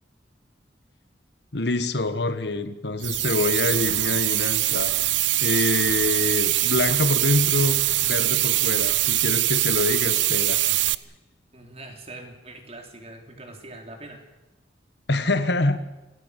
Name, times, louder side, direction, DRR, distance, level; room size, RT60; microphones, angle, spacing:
voice 1, 1.5-4.9 5.4-10.6 15.1-15.8, left 2 dB, 60° left, 11 dB, 1.4 m, -25 dB
sound 1, 3.0-11.0, right 16 dB, 70° right, 0.7 m, -23 dB
voice 2, 11.5-14.3, right 2 dB, 35° right, 4 dB, 3.6 m, -42 dB
27.0 x 16.5 x 8.3 m, 1.0 s
head